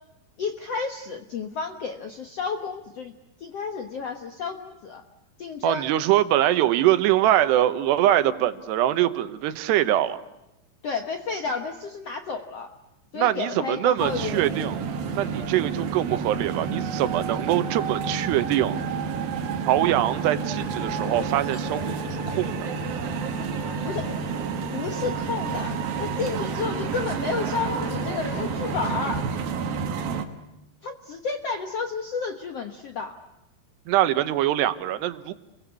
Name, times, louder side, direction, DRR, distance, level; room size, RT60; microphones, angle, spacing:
voice 1, 0.4-3.1 3.4-5.0 5.4-5.9 10.8-12.7 13.1-14.5 19.7-19.9 23.9-24.1 24.7-29.3 30.8-33.2, left 5 dB, 70° left, 6 dB, 1.5 m, -31 dB
voice 2, 5.6-10.2 13.1-14.8 15.2-18.8 19.7-22.6 33.9-35.3, right 13 dB, 85° right, 11 dB, 3.2 m, -23 dB
sound 1, 14.0-30.2, right 6 dB, 65° right, 3.3 m, -30 dB
sound 2, 20.6-29.2, left 5 dB, 40° left, 2.8 m, -41 dB
29.0 x 22.5 x 8.3 m, 0.92 s
omnidirectional pair, 4.8 m